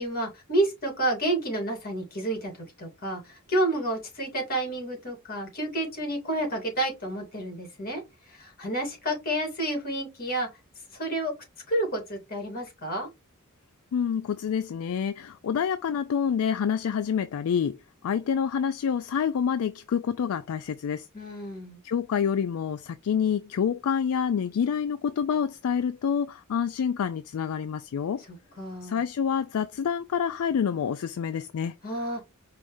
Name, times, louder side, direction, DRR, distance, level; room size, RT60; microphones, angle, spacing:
voice 1, 0.0-8.0 8.3-10.5 10.9-11.3 11.7-13.1 21.1-21.8 28.3-29.0 31.8-32.2, right 1 dB, 45° left, 2.6 m, -30 dB
voice 2, 13.9-21.1 21.8-28.2 28.8-31.7, left 7 dB, 70° left, 0.3 m, -27 dB
4.9 x 2.6 x 3.4 m
head